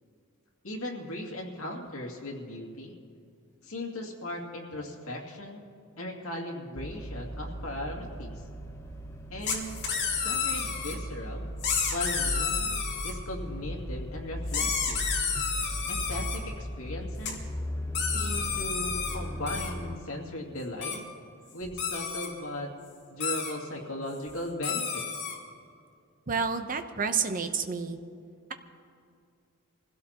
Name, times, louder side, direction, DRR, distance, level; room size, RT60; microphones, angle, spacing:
voice 1, 0.6-2.9 3.6-5.6 6.0-8.4 9.3-9.8 10.2-11.5 11.9-12.8 13.0-15.0 15.9-17.4 18.0-21.0 21.5-22.7 23.1-25.0, left 1 dB, 80° left, -1 dB, 2.4 m, -37 dB
sound 1, 6.8-20.0, equal, 15° left, 0.7 m, -37 dB
sound 2, 9.4-10.9 11.6-13.1 14.5-16.4 17.3-17.4 17.9-19.2 19.5-19.7 20.8-21.0 21.6-22.3 23.2-23.5 24.3-24.4 24.6-25.4, left 6 dB, 50° left, 2.5 m, -31 dB
voice 2, 26.3-28.0, right 5 dB, 40° right, 8 dB, 0.8 m, -29 dB
25.5 x 16.5 x 3.0 m, 2.4 s
head